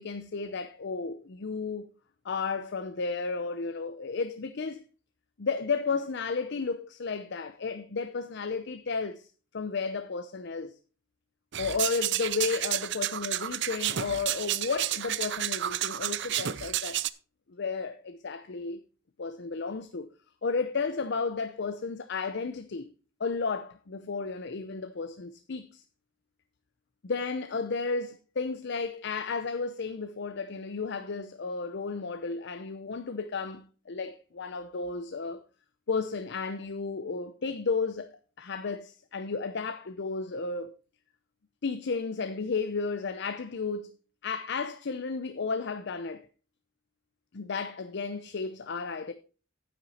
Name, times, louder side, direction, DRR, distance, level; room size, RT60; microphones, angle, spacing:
voice 1, 0.0-1.9 2.2-4.8 5.4-9.3 9.5-10.8 11.6-17.0 17.6-18.8 19.2-20.1 20.4-22.9 23.2-25.8 27.0-35.4 35.9-38.1 38.4-40.7 41.6-43.9 44.2-46.3 47.3-49.1, left 4 dB, 60° left, 0.6 m, -33 dB
sound 1, 11.5-17.1, right 13 dB, 60° right, 0.5 m, -31 dB
9.3 x 8.7 x 4.2 m
head